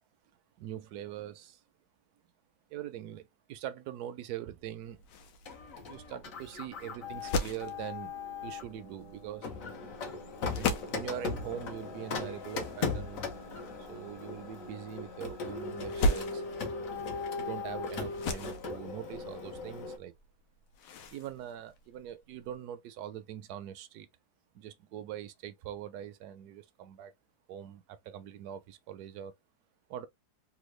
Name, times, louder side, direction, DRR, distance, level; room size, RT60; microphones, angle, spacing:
voice 1, 0.6-1.6 2.7-5.0 5.8-8.1 8.4-9.5 10.6-13.3 13.8-16.4 17.4-20.1 21.1-24.1 24.5-27.1 27.5-29.3 29.9-30.1, right 11 dB, 70° right, 1.0 m, -42 dB
sound 1, 4.6-22.6, left 2 dB, 85° left, 1.3 m, -39 dB
Printer, 5.5-8.7 9.4-20.0, left 4 dB, 55° left, 1.1 m, -38 dB
sound 2, 7.0-14.8, right 1 dB, 20° left, 0.6 m, -53 dB
3.5 x 2.2 x 3.1 m
omnidirectional pair, 1.9 m